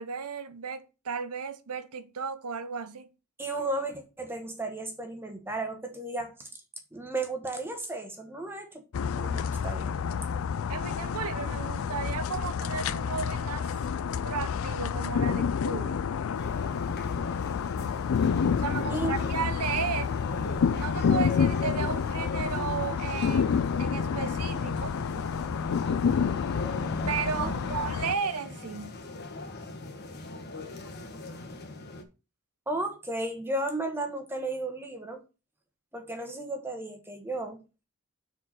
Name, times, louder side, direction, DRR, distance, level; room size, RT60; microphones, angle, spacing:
voice 1, 0.0-3.1 10.7-14.0 14.2-16.1 18.6-20.1 20.7-25.0 27.1-29.0, right 6 dB, 90° right, 0.8 m, -34 dB
voice 2, 3.4-6.5 6.9-8.8 9.2-10.0 18.9-19.1 27.4-27.5 32.7-35.2 35.9-37.6, right 2 dB, 10° right, 1.3 m, -34 dB
sound 1, 8.9-28.1, left 6 dB, 65° left, 0.3 m, -29 dB
sound 2, 16.3-32.0, left 2 dB, 45° left, 1.4 m, -39 dB
6.1 x 4.6 x 6.2 m
head